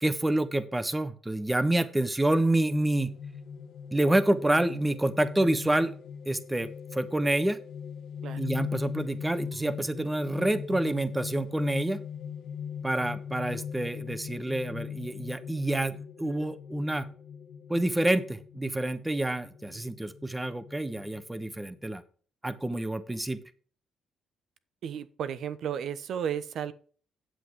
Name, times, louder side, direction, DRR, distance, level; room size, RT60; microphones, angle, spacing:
voice 1, 0.0-3.1 3.9-5.9 6.3-7.6 8.4-12.0 12.8-17.1 17.7-22.0 22.4-23.4, right 1 dB, 10° right, 11 dB, 1.1 m, -28 dB
sound 1, 2.7-21.9, left 7 dB, 80° left, 1.3 m, -40 dB
voice 2, 24.8-26.7, right 8 dB, 70° right, 14 dB, 0.9 m, -33 dB
8.9 x 7.7 x 4.7 m, 0.42 s
cardioid pair, 90°, 0 cm